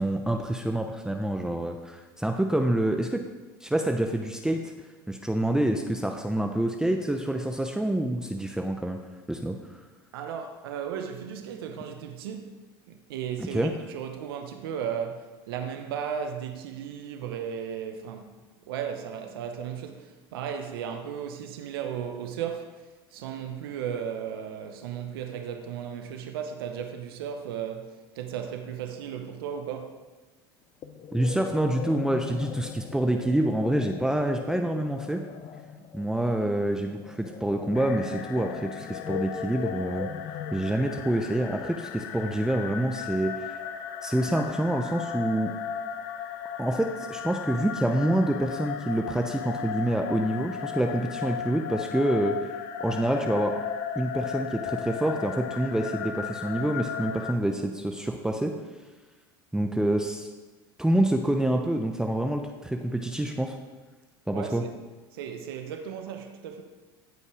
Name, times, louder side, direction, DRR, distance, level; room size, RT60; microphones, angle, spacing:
voice 1, 0.0-3.2 3.6-4.7 5.1-9.0 9.3-9.8 13.4-13.7 31.1-35.2 35.9-40.1 40.5-43.4 44.0-45.5 46.6-52.4 52.8-53.5 54.0-58.5 59.5-60.3 60.8-63.6 64.3-64.6, right 1 dB, 5° right, 0.8 m, -27 dB
voice 2, 10.1-12.5 12.9-18.3 18.7-22.7 23.1-30.0 64.3-64.7 65.1-66.6, right 8 dB, 80° right, 1.0 m, -35 dB
sound 1, 30.8-42.1, left 8 dB, 45° left, 0.8 m, -40 dB
sound 2, 37.7-57.3, left 8 dB, 75° left, 0.8 m, -36 dB
16.0 x 5.4 x 4.9 m
hypercardioid pair, 90°, 12 cm